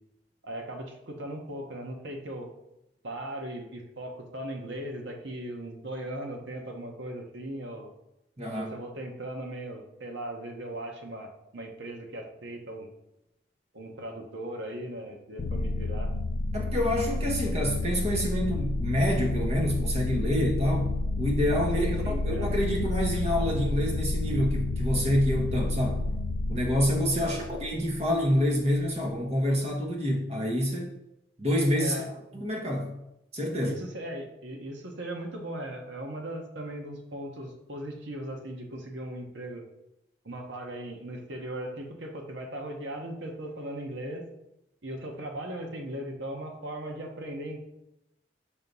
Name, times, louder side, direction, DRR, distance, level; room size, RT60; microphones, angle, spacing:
voice 1, 0.4-2.5 3.0-7.9 8.6-12.9 13.7-16.1 21.7-22.5 27.2-27.5 31.8-32.1 33.6-39.7 40.2-44.2 44.8-47.6, right 1 dB, 80° right, 2 dB, 1.1 m, -38 dB
voice 2, 8.4-8.7 16.5-20.9 21.2-26.0 26.5-30.9 31.4-32.0 32.3-32.9 33.3-33.7, equal, 35° right, 0 dB, 1.0 m, -27 dB
sound 1, 15.4-28.3, left 2 dB, 55° left, 0.4 m, -30 dB
6.4 x 2.9 x 5.3 m, 0.86 s
head